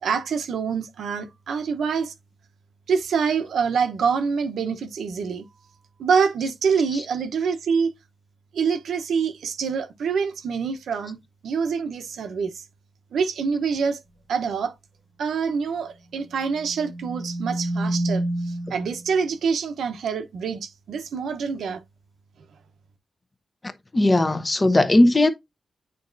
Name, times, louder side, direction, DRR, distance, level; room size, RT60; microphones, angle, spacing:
voice 1, 0.0-2.1 2.9-5.5 6.0-7.9 8.5-11.2 11.4-12.6 13.1-14.0 14.3-14.7 15.2-21.8, right 6 dB, 90° right, 0.8 m, -25 dB
sound 1, 16.5-19.0, right 1 dB, 80° left, 2.4 m, -28 dB
voice 2, 23.9-25.3, left 1 dB, 25° left, 0.8 m, -17 dB
9.3 x 4.1 x 2.5 m
wide cardioid pair, 100°, 0 cm